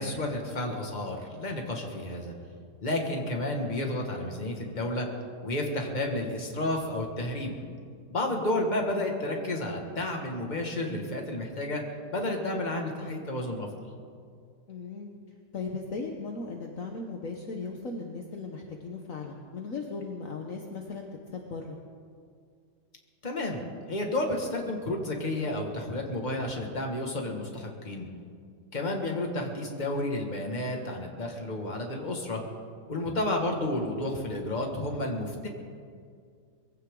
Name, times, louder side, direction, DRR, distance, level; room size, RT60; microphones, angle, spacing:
voice 1, 0.0-2.3 2.8-5.1 5.4-7.6 8.1-11.8 12.1-13.7 23.2-23.6 23.9-28.1 28.7-32.4 32.9-35.5, left 1 dB, 25° left, 2 dB, 1.9 m, -31 dB
voice 2, 14.7-15.1 15.5-21.8 33.0-33.5, left 4 dB, 55° left, 2 dB, 1.4 m, -38 dB
22.5 x 16.0 x 3.8 m, 2.2 s
omnidirectional pair, 1.8 m